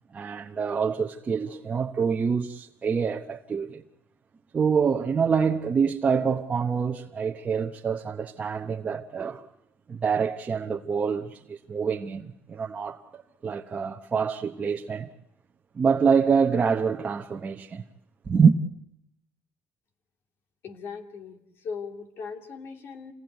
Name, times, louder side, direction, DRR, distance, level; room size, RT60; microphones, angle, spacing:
voice 1, 0.1-3.8 4.5-9.5 9.9-15.1 15.7-17.8 18.2-18.6, right 6 dB, 30° right, 1.0 m, -26 dB
voice 2, 20.6-23.1, left 5 dB, 55° left, 2.6 m, -39 dB
27.5 x 18.5 x 9.3 m
cardioid pair, 115°, 5 cm